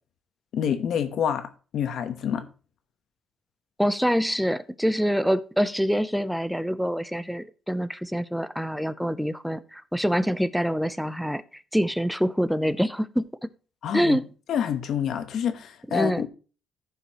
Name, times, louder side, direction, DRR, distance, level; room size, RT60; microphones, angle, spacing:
voice 1, 0.5-1.5 1.7-2.4 13.8-14.2 14.5-16.3, left 8 dB, 70° left, 1.1 m, -27 dB
voice 2, 3.8-13.5 13.9-14.2 15.9-16.2, equal, ahead, 0.6 m, -25 dB
14.0 x 5.6 x 3.0 m
cardioid pair, 115°, 0 cm